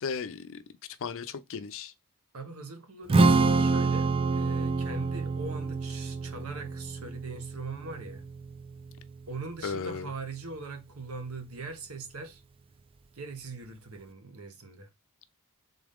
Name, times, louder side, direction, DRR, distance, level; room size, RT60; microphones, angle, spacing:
voice 1, 0.0-0.6 1.0-1.9 9.6-10.1, left 5 dB, 65° left, 0.5 m, -35 dB
voice 2, 2.3-8.3 9.3-12.4 13.1-14.9, right 4 dB, 75° right, 1.1 m, -41 dB
Strum, 3.1-9.4, right 3 dB, 25° right, 0.3 m, -27 dB
3.9 x 3.6 x 3.5 m
head